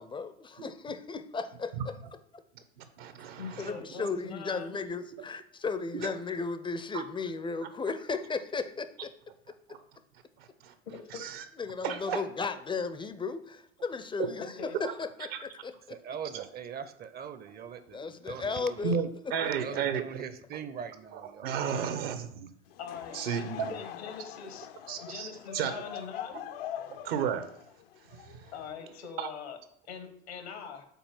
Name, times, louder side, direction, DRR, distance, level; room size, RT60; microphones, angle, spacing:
voice 1, 0.0-1.9 2.3-2.4 3.6-9.1 11.6-16.0 17.9-19.0 19.3-19.4 19.7-19.8, left 4 dB, 15° left, 11 dB, 0.5 m, -35 dB
voice 2, 2.8-3.7 5.9-6.1 6.9-7.0 9.7-9.8 10.4-10.7 11.1-11.4 11.8-12.2 14.2-14.3 16.3-16.4 18.8-20.0 21.1-22.5 23.1-23.7 24.9-25.3 25.5-25.7 27.0-27.5 28.1-28.5 29.2-29.3, right 7 dB, 70° right, 9 dB, 1.0 m, -33 dB
voice 3, 3.4-4.8 10.9-11.3 14.4-14.8 22.8-24.7 25.0-26.4 28.5-29.6 29.9-30.9, left 6 dB, 80° left, 7 dB, 1.3 m, -42 dB
voice 4, 15.9-19.2 19.6-22.3, right 7 dB, 30° right, 12 dB, 0.6 m, -42 dB
Laughter / Crowd, 22.7-29.1, left 10 dB, 65° left, 0.6 m, -43 dB
5.4 x 4.2 x 6.0 m, 0.68 s
hypercardioid pair, 80°, 31 cm